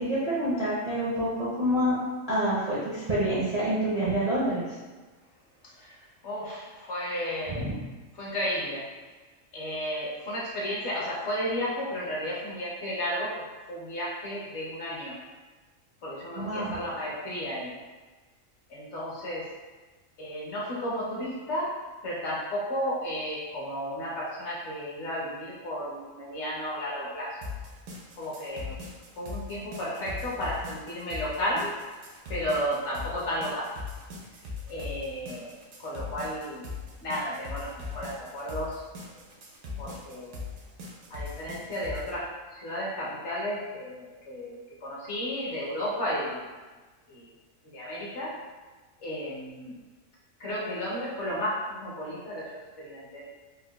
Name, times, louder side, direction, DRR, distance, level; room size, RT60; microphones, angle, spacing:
voice 1, 0.0-4.6 7.5-7.7 16.3-16.7, right 1 dB, 50° right, -9 dB, 0.5 m, -27 dB
voice 2, 6.2-7.7 8.2-8.8 9.5-13.4 13.7-15.2 16.0-17.7 18.7-19.5 20.2-21.8 22.0-27.4 28.2-28.8 29.2-31.7 32.3-33.7 34.7-35.5 35.8-36.7 37.0-38.8 39.8-40.4 41.1-46.4 47.1-47.3 47.7-48.4 49.0-49.7 50.4-53.2, equal, 60° left, -5 dB, 1.0 m, -33 dB
sound 1, 27.4-42.1, left 4 dB, 80° right, 1.0 m, -40 dB
3.7 x 2.3 x 2.2 m, 1.3 s
omnidirectional pair, 1.4 m